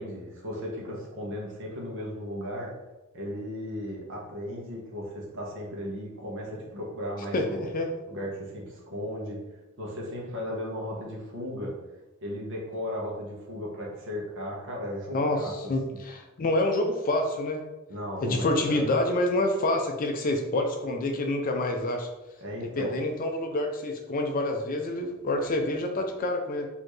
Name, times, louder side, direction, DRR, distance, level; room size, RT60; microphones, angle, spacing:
voice 1, 0.0-2.7 3.1-7.6 8.1-9.4 9.8-11.7 12.2-15.5 17.9-18.9 22.4-22.9, equal, 60° right, -3 dB, 1.1 m, -36 dB
voice 2, 7.3-7.9 15.1-17.6 18.2-22.1 22.8-26.7, left 1 dB, 40° left, 4 dB, 0.4 m, -27 dB
4.2 x 2.8 x 3.2 m, 1.0 s
head